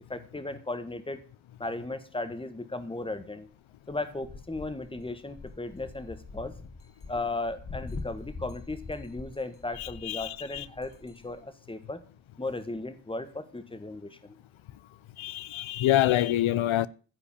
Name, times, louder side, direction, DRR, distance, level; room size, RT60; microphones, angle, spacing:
voice 1, 0.1-1.2 1.6-3.5 3.9-6.5 7.1-12.0 12.4-14.3, left 2 dB, 10° left, 1.4 m, -36 dB
sound 1, 4.0-11.4, left 4 dB, 30° left, 1.1 m, -44 dB
voice 2, 9.8-10.6 15.2-16.9, left 13 dB, 80° left, 0.6 m, -26 dB
15.0 x 5.2 x 8.6 m
wide cardioid pair, 145°, 47 cm